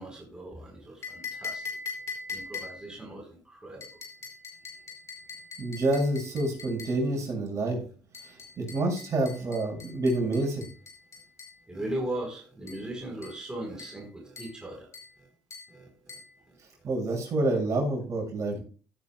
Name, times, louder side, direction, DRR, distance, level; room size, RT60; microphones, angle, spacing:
voice 1, 0.0-1.8 2.3-3.9 11.7-14.9 15.2-15.3 15.7-16.2 16.5-16.6, right 1 dB, 10° right, -1 dB, 4.1 m, -38 dB
sound 1, 1.0-3.0 3.8-7.0 8.1-11.6 12.7-12.9 13.2-13.5 13.8-14.1 14.4-14.6 14.9-15.2 15.5-15.8 16.1-16.3, left 4 dB, 45° left, 5.2 m, -42 dB
voice 2, 5.6-7.8 8.2-10.7 16.8-18.6, right 2 dB, 45° right, 1 dB, 6.7 m, -28 dB
16.5 x 9.4 x 2.3 m, 0.39 s
supercardioid pair, 80°, 7 cm